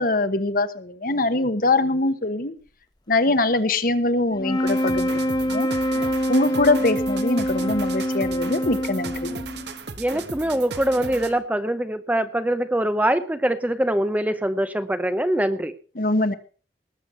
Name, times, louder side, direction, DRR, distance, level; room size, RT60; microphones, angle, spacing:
voice 1, 0.0-2.5 3.1-5.7 6.3-9.3 16.0-16.3, left 2 dB, 50° left, 11 dB, 1.2 m, -23 dB
sound 1, 4.3-9.8, equal, 20° left, 0.9 m, -25 dB
sound 2, 4.7-11.5, right 4 dB, 65° right, 1.3 m, -37 dB
voice 2, 10.0-15.7, right 1 dB, 10° right, 11 dB, 0.6 m, -23 dB
19.5 x 7.9 x 5.6 m, 0.39 s
head